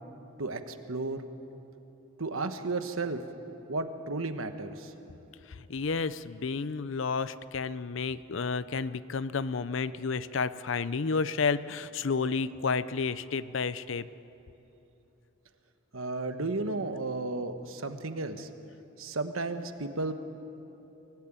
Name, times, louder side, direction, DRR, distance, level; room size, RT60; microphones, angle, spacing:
voice 1, 0.4-1.2 2.2-3.2 3.7-4.9 15.9-18.5 19.0-20.1, right 3 dB, 75° right, 8 dB, 1.3 m, -33 dB
voice 2, 5.7-14.1, left 4 dB, 65° left, 15 dB, 0.6 m, -31 dB
24.0 x 16.5 x 9.0 m, 3.0 s
head